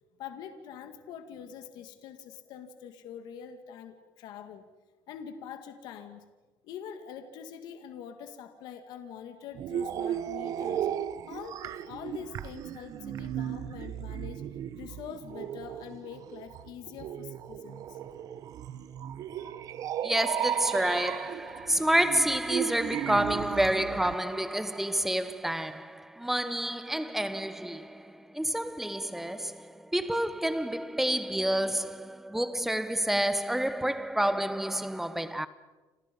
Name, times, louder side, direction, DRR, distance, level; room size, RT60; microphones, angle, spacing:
voice 1, 0.2-4.6 5.1-6.2 6.6-10.9 11.3-14.4 14.8-18.0 19.3-19.6, left 8 dB, 70° left, 2.2 m, -44 dB
sound 1, 9.5-24.1, right 10 dB, 50° right, 1.0 m, -35 dB
voice 2, 20.0-35.5, right 1 dB, 5° right, 1.0 m, -29 dB
29.0 x 28.0 x 5.4 m
cardioid pair, 150°, 7 cm